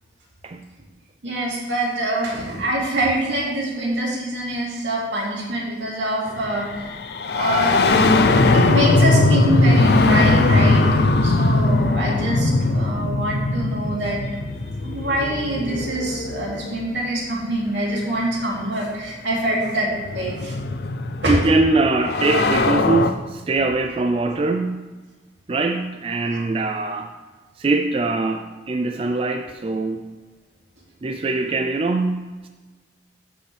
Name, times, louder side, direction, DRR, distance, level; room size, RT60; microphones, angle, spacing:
voice 1, 1.2-6.9 7.3-8.2 8.5-10.8 11.2-14.2 14.8-20.5 21.2-21.4 26.3-26.4, right 1 dB, 80° right, -4 dB, 2.5 m, -25 dB
sound 1, 6.4-17.0 18.2-18.3 19.4-23.1, left 2 dB, 60° left, 0.5 m, -20 dB
voice 2, 21.3-24.9 25.5-27.1 27.6-30.0 31.0-32.5, right 3 dB, 30° right, 5 dB, 0.3 m, -22 dB
14.0 x 5.2 x 3.4 m, 1.3 s
head